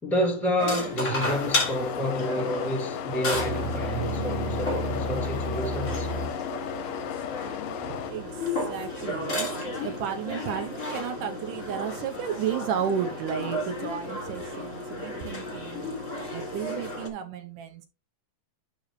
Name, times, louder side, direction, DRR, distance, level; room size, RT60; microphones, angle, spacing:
voice 1, 0.0-6.1, equal, ahead, 1.6 m, -29 dB
sound 1, 0.6-17.1, left 1 dB, 35° left, 1.4 m, -33 dB
sound 2, 1.2-8.1, left 14 dB, 80° left, 2.1 m, -36 dB
sound 3, 3.3-9.2, equal, 60° right, 2.1 m, -35 dB
voice 2, 7.8-9.5 9.8-15.9 16.3-17.9, right 8 dB, 75° right, 2.1 m, -33 dB
11.5 x 3.8 x 3.1 m
omnidirectional pair, 4.2 m